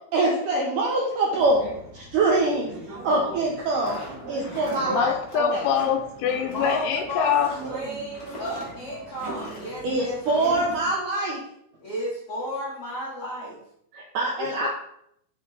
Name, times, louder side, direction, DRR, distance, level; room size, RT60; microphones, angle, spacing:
voice 1, 0.1-1.6 1.9-2.8 3.0-5.6 9.8-11.4 13.9-14.7, right 2 dB, 75° right, -3 dB, 1.9 m, -24 dB
sound 1, 1.3-10.9, right 3 dB, 30° right, 1.7 m, -40 dB
sound 2, 3.6-9.8 10.2-10.8, left 1 dB, 50° left, 1.1 m, -43 dB
voice 2, 4.8-7.5 14.6-14.7, left 7 dB, 85° left, 5 dB, 2.5 m, -24 dB
voice 3, 6.4-7.4 7.7-10.7 11.8-13.6, equal, 65° left, -8 dB, 1.4 m, -33 dB
6.0 x 4.5 x 3.8 m, 0.74 s
omnidirectional pair, 4.7 m